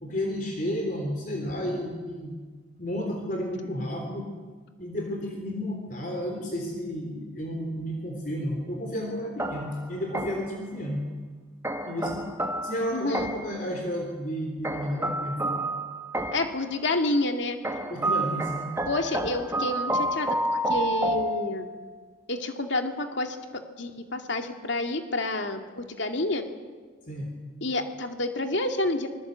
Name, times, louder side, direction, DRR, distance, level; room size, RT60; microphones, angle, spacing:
voice 1, 0.0-2.4 2.8-4.3 4.8-11.0 11.9-12.3 12.6-15.6 17.9-18.7 27.1-27.3, equal, 45° left, 2 dB, 3.5 m, -32 dB
sound 1, 9.4-10.6 11.6-13.6 14.6-16.6 17.6-21.9, right 1 dB, 15° right, 1.4 m, -30 dB
voice 2, 12.9-13.3 16.3-17.6 18.9-21.7 22.3-26.4 27.6-29.1, left 2 dB, 70° left, 5 dB, 2.3 m, -29 dB
25.5 x 21.0 x 8.1 m, 1.5 s
head